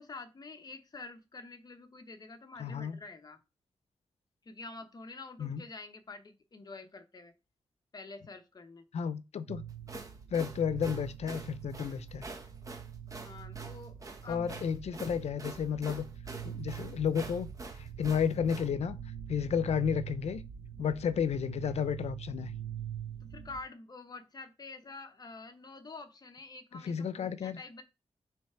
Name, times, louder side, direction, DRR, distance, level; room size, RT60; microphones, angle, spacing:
voice 1, 0.0-3.4 4.4-7.3 7.9-8.8 13.2-14.6 23.3-27.8, left 3 dB, 40° left, 0.9 m, -47 dB
voice 2, 2.6-3.0 5.4-5.6 8.9-9.6 10.3-12.3 14.3-16.1 16.4-17.5 17.8-19.0 19.3-20.4 20.8-22.5 26.8-27.6, left 7 dB, 85° left, 0.6 m, -32 dB
sound 1, 9.5-23.6, right 9 dB, 65° right, 0.7 m, -44 dB
sound 2, 9.7-18.7, right 2 dB, 30° right, 1.1 m, -46 dB
6.9 x 3.3 x 4.5 m
wide cardioid pair, 140°, 11 cm